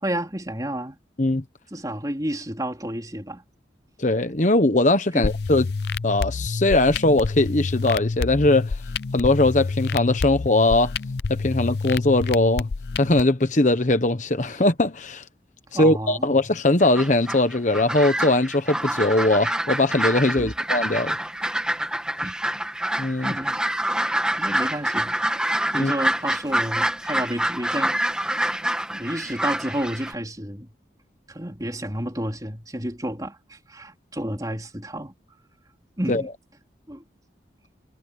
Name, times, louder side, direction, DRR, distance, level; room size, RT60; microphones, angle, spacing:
voice 1, 0.0-1.0 1.7-3.4 5.1-5.2 15.7-16.3 20.4-20.5 22.2-22.3 23.2-23.6 24.4-25.2 25.7-28.3 28.9-30.7 31.3-35.1 36.0-36.3 36.9-37.0, right 1 dB, 20° right, 3.7 m, -30 dB
voice 2, 4.0-5.7 6.0-8.8 9.1-10.9 11.3-12.7 13.0-15.2 15.8-21.2 23.0-23.3 25.7-25.9 36.1-36.2, left 2 dB, 45° left, 1.1 m, -20 dB
sound 1, 5.2-13.2, left 4 dB, 65° left, 0.5 m, -28 dB
sound 2, 16.8-30.1, right 1 dB, 5° right, 1.6 m, -26 dB
head